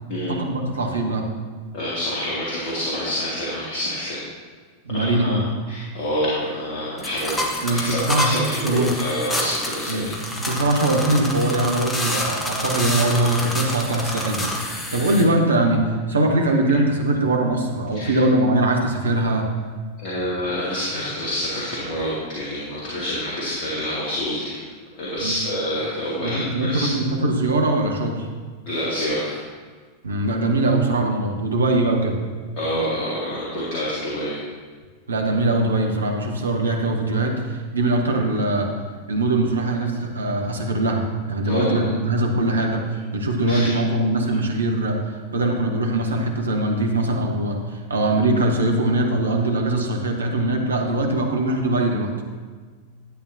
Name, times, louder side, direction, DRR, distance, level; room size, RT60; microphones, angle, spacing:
voice 1, 0.3-1.3 4.8-5.4 7.6-9.0 9.9-19.5 25.2-25.5 26.2-28.3 30.0-32.2 35.1-38.7 39.1-52.1, right 2 dB, 70° right, 2 dB, 1.2 m, -22 dB
voice 2, 1.7-4.2 4.9-10.1 10.4-10.5 17.9-18.2 20.0-24.6 25.0-26.9 28.7-29.4 32.6-34.4 41.4-41.9 43.5-43.7, equal, 45° left, -7 dB, 2.3 m, -27 dB
sound 1, 7.0-15.2, left 1 dB, 15° left, 1.4 m, -28 dB
11.5 x 8.9 x 2.8 m, 1.5 s
figure-of-eight pair, 90°, 0 cm